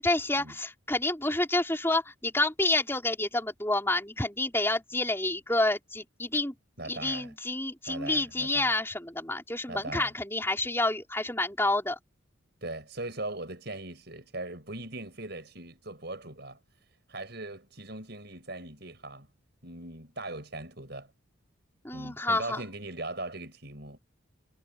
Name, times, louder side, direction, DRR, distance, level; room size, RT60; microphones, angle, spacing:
voice 1, 0.0-6.5 6.8-12.0 21.8-22.6, left 2 dB, 10° left, 4.4 m, -29 dB
voice 2, 6.8-7.3 7.9-8.7 9.7-10.1 12.6-16.6 17.1-19.3 19.6-21.1 21.9-24.0, right 2 dB, 55° right, 7.9 m, -40 dB
head